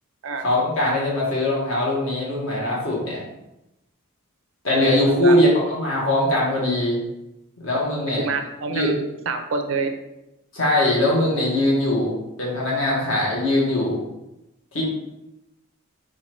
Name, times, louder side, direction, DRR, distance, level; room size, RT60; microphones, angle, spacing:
voice 1, 0.4-3.2 4.6-7.0 7.6-8.2 8.7-8.9 10.5-14.0 14.7-14.8, left 1 dB, 65° left, -4 dB, 1.4 m, -21 dB
voice 2, 5.0-5.4 8.2-9.9, right 4 dB, 65° right, 6 dB, 0.5 m, -27 dB
4.2 x 2.5 x 4.3 m, 0.92 s
head